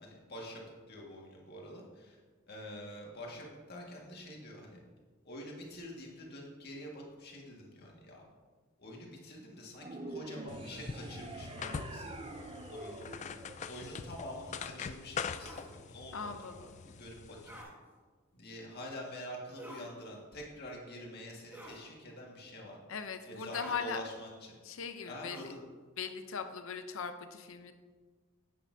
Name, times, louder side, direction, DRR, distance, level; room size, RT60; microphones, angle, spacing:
voice 1, 0.0-2.2 2.5-4.8 5.2-8.2 8.8-12.4 12.7-13.1 13.7-17.6 18.3-22.8 23.3-24.6 25.1-25.6, equal, 50° left, -2 dB, 1.8 m, -47 dB
sound 1, 9.8-14.3, right 2 dB, 25° right, 0.5 m, -46 dB
sound 2, 10.5-17.6, left 6 dB, 35° left, 0.3 m, -43 dB
sound 3, 15.4-15.7 17.5-17.7 19.6-19.9 21.5-21.9 23.5-23.8 25.2-25.6, right 1 dB, 10° right, 1.3 m, -48 dB
voice 2, 16.1-16.8 22.9-24.0 24.6-25.5 26.0-27.7, left 6 dB, 70° left, 8 dB, 0.7 m, -39 dB
9.9 x 8.7 x 2.7 m, 1.5 s
head